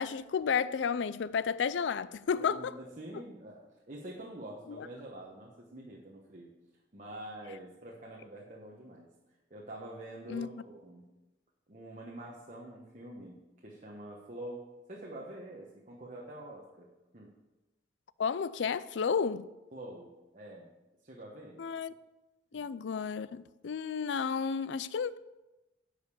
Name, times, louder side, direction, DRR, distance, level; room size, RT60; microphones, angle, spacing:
voice 1, 0.0-2.7 4.7-4.9 10.3-10.5 18.2-19.5 21.6-21.9 22.5-25.2, left 6 dB, 80° left, 0.4 m, -32 dB
voice 2, 2.4-6.5 6.9-9.1 9.5-11.0 11.7-16.9 17.1-17.3 19.7-20.7 21.0-21.6 22.5-22.6, right 1 dB, 40° right, 1.1 m, -46 dB
10.5 x 5.1 x 6.9 m
head